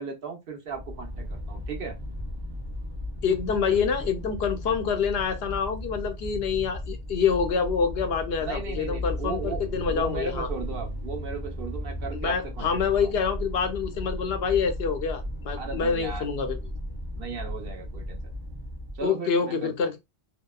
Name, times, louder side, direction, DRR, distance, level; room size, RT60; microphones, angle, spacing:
voice 1, 0.0-2.0 8.4-9.6 9.9-13.2 15.6-16.3 17.1-18.4 18.9-19.9, right 5 dB, 60° right, 0.9 m, -36 dB
sound 1, 0.7-19.1, left 1 dB, 30° right, 0.5 m, -35 dB
voice 2, 3.2-10.5 12.1-16.6 19.0-20.0, left 6 dB, 70° left, 0.8 m, -26 dB
2.7 x 2.1 x 2.2 m
omnidirectional pair, 1.1 m